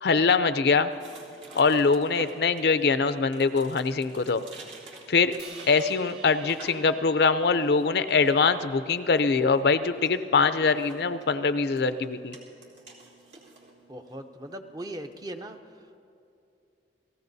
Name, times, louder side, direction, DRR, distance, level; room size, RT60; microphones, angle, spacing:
voice 1, 0.0-0.9 1.5-4.4 5.1-5.3 5.7-12.4, left 4 dB, 60° left, 11 dB, 0.5 m, -23 dB
sound 1, 0.9-15.1, right 3 dB, 90° right, 2.4 m, -51 dB
Crash cymbal, 5.4-9.6, right 4 dB, 65° right, 1.8 m, -49 dB
voice 2, 13.9-16.0, right 1 dB, 20° right, 7 dB, 0.6 m, -40 dB
29.0 x 18.5 x 2.7 m, 2.6 s
head